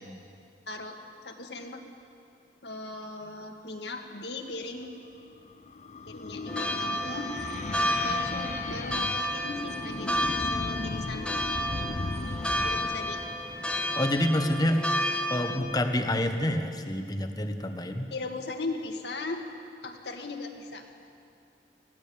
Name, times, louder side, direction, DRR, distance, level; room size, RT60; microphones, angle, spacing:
voice 1, 0.7-1.8 2.6-4.9 6.1-7.3 7.8-11.3 12.6-13.2 13.7-14.0 18.1-19.5 19.8-20.8, left 3 dB, 70° left, 4 dB, 1.9 m, -38 dB
sound 1, 4.9-14.5, left 3 dB, 40° left, 0.5 m, -37 dB
sound 2, 6.5-15.6, equal, 5° left, 1.0 m, -31 dB
voice 2, 14.0-14.9 15.3-18.1, left 1 dB, 20° left, 6 dB, 1.2 m, -27 dB
20.0 x 15.5 x 8.7 m, 2.5 s
head